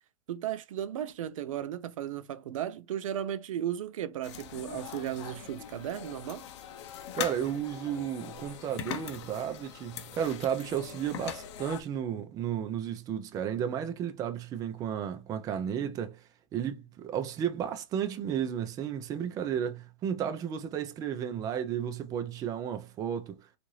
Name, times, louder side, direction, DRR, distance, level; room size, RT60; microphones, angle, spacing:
voice 1, 0.3-6.4, right 10 dB, 75° right, 0.5 m, -35 dB
sound 1, 4.2-11.8, left 10 dB, 60° left, 0.6 m, -41 dB
voice 2, 7.1-16.2 16.5-23.5, right 9 dB, 20° right, 0.5 m, -33 dB
3.7 x 2.5 x 3.1 m
hypercardioid pair, 140°, 17 cm